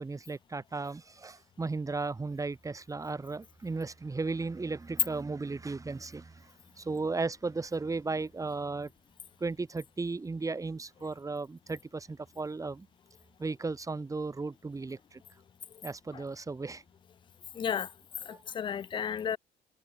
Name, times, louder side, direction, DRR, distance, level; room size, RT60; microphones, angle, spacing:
voice 1, 0.0-6.5 6.8-8.9 9.4-12.9 13.4-15.2 15.8-16.8 18.3-18.4 19.0-19.1, right 3 dB, 20° right, 2.6 m, -35 dB
voice 2, 17.5-17.9 18.3-19.4, left 8 dB, 30° left, 0.4 m, -33 dB
cardioid pair, 110°, 17 cm